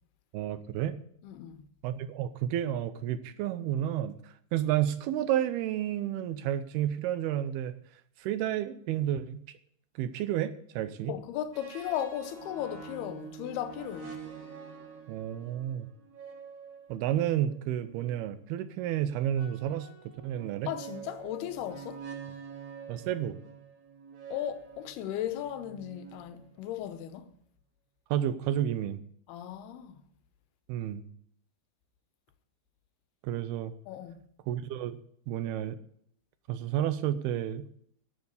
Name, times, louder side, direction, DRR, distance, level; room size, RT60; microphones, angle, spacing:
voice 1, 0.3-1.0 1.8-7.7 8.2-9.4 10.0-11.1 15.1-15.9 16.9-19.9 20.2-20.7 22.9-23.4 28.1-29.0 30.7-31.0 33.2-33.7 34.5-35.0 35.3-35.8 36.5-37.7, right 11 dB, 85° right, 2.6 m, -31 dB
voice 2, 1.2-1.6 11.1-14.2 20.7-22.1 24.3-27.3 29.3-30.0 33.9-34.3, left 11 dB, 80° left, 2.8 m, -36 dB
sound 1, 11.5-18.2 19.3-26.7, right 6 dB, 50° right, 3.1 m, -47 dB
12.5 x 7.2 x 8.1 m
omnidirectional pair, 4.6 m